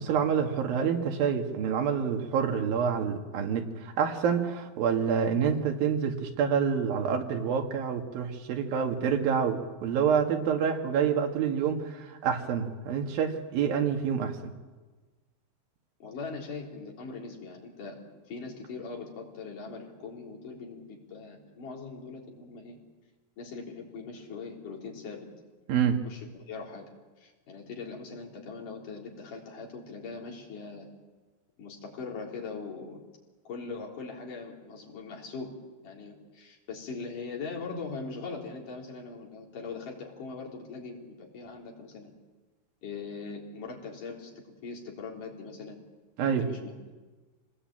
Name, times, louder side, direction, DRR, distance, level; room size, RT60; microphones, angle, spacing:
voice 1, 0.0-14.5 25.7-26.0 46.2-46.5, right 7 dB, 75° right, 4 dB, 3.7 m, -27 dB
voice 2, 16.0-18.0 18.3-22.8 23.4-25.3 26.0-26.9 27.2-30.9 31.6-33.0 33.5-35.6 35.8-42.1 42.8-44.3 44.6-45.8 46.2-46.9, left 4 dB, 60° left, -1 dB, 5.3 m, -41 dB
26.0 x 19.5 x 8.9 m, 1.3 s
omnidirectional pair, 4.2 m